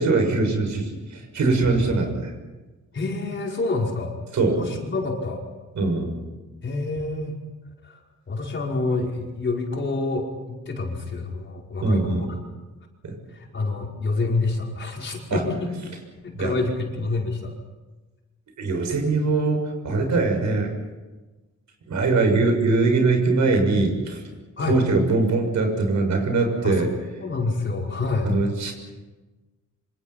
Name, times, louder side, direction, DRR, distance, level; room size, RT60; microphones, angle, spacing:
voice 1, 0.0-2.3 4.3-4.6 5.7-6.2 11.8-12.3 13.0-13.2 15.3-15.4 16.4-16.5 18.6-20.7 21.9-24.2 24.7-26.9 28.2-28.7, right 3 dB, 65° right, 4 dB, 6.6 m, -22 dB
voice 2, 2.9-4.1 4.6-5.4 6.6-7.4 7.8-8.0 8.3-12.3 13.3-15.7 16.2-17.5 24.6-24.8 26.6-26.8 27.2-28.3, left 3 dB, 35° left, -1 dB, 5.2 m, -27 dB
27.5 x 26.5 x 5.8 m, 1.2 s
wide cardioid pair, 145°, 31 cm